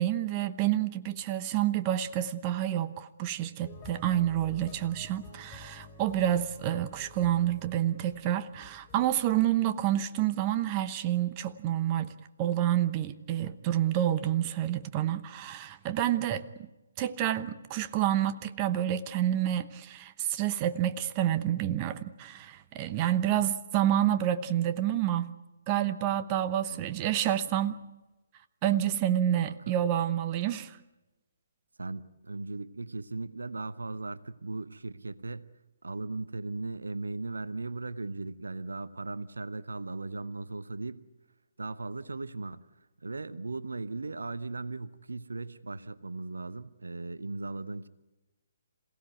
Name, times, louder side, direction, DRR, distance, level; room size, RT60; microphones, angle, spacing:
voice 1, 0.0-12.1 12.4-16.7 17.0-25.3 25.7-27.7 28.6-30.8, right 12 dB, 25° right, 0.9 m, -28 dB
sound 1, 3.6-10.0, left 4 dB, 20° left, 3.8 m, -51 dB
voice 2, 29.4-29.7 31.8-35.5 35.8-41.0 41.6-42.6 43.0-47.9, right 3 dB, 75° right, 0.9 m, -37 dB
27.5 x 17.0 x 8.3 m
figure-of-eight pair, 135°, 0 cm